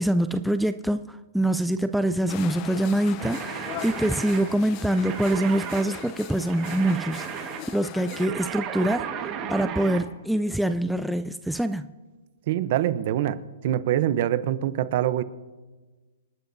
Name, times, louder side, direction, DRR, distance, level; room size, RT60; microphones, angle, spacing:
voice 1, 0.0-11.9, right 1 dB, ahead, 9 dB, 0.3 m, -25 dB
sound 1, 2.3-8.3, left 12 dB, 30° left, 0.7 m, -40 dB
sound 2, 3.2-10.1, right 8 dB, 30° right, 1.5 m, -35 dB
voice 2, 12.5-13.4 13.6-15.2, right 12 dB, 50° right, 14 dB, 0.7 m, -24 dB
27.5 x 11.5 x 2.7 m, 1.3 s
hypercardioid pair, 150°, 0 cm